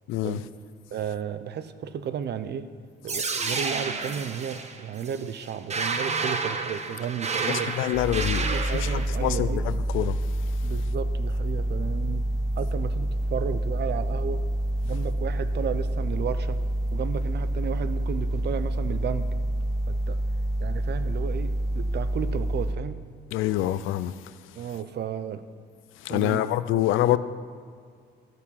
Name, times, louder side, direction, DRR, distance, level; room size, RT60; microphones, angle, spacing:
voice 1, 0.1-0.4 7.5-8.5 8.7-10.2 23.3-24.1 26.0-27.2, left 13 dB, 85° left, 0.5 m, -26 dB
voice 2, 0.9-2.7 3.0-7.8 8.3-9.6 10.6-12.3 12.6-14.4 14.8-16.6 16.9-19.3 19.9-20.2 20.6-23.0 24.6-25.4 26.1-26.4 26.7-27.2, right 8 dB, 60° right, 0.6 m, -33 dB
sound 1, 3.1-9.1, right 4 dB, 35° right, 0.9 m, -30 dB
sound 2, 7.9-22.7, right 1 dB, 15° left, 1.8 m, -27 dB
12.5 x 6.6 x 5.7 m
cardioid pair, 90°, 20 cm